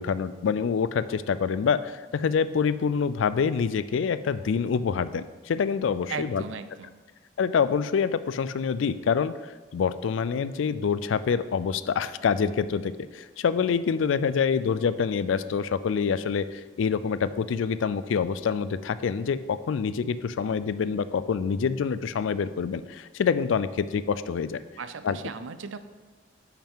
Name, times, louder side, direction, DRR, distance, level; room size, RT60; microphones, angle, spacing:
voice 1, 0.0-6.4 7.4-24.6 25.0-25.2, left 6 dB, 85° left, 14 dB, 0.4 m, -26 dB
voice 2, 6.1-7.0 24.8-25.8, right 5 dB, 85° right, 12 dB, 0.5 m, -36 dB
8.7 x 5.8 x 3.6 m, 1.3 s
head